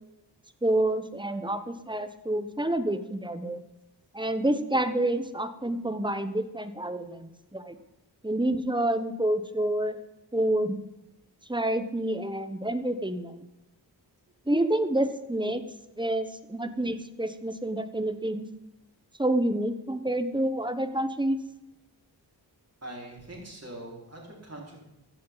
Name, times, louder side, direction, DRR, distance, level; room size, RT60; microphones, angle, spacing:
voice 1, 0.6-3.6 4.1-7.8 8.2-10.0 10.3-10.8 11.5-13.4 14.5-15.6 16.0-18.4 19.2-21.4, right 1 dB, 10° right, 10 dB, 1.1 m, -28 dB
voice 2, 22.8-24.8, right 1 dB, 35° right, -3 dB, 5.0 m, -42 dB
15.0 x 11.5 x 4.0 m, 0.96 s
wide cardioid pair, 70°, 44 cm